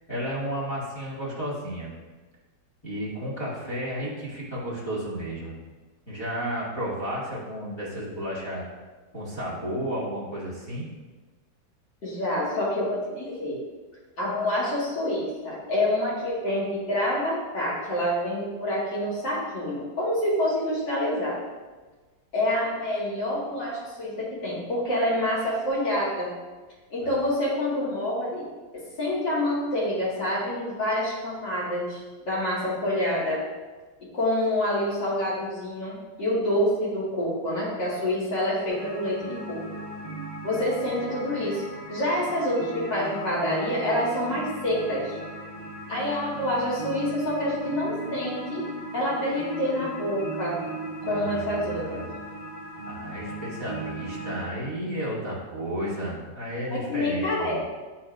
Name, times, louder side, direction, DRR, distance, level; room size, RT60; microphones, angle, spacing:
voice 1, 0.1-1.9 2.8-5.6 6.1-8.7 9.1-10.9 51.1-52.1 52.9-57.6, equal, 15° left, -10 dB, 1.7 m, -32 dB
voice 2, 12.0-13.5 14.2-21.4 22.3-26.3 26.9-28.4 28.7-33.4 34.1-39.6 40.4-41.6 41.9-45.2 45.9-48.6 48.9-50.6 51.1-52.0 56.7-57.6, left 1 dB, 65° left, -7 dB, 2.6 m, -27 dB
sound 1, 38.7-54.5, right 2 dB, 20° right, 1.1 m, -37 dB
9.8 x 4.2 x 2.5 m, 1.3 s
omnidirectional pair, 2.0 m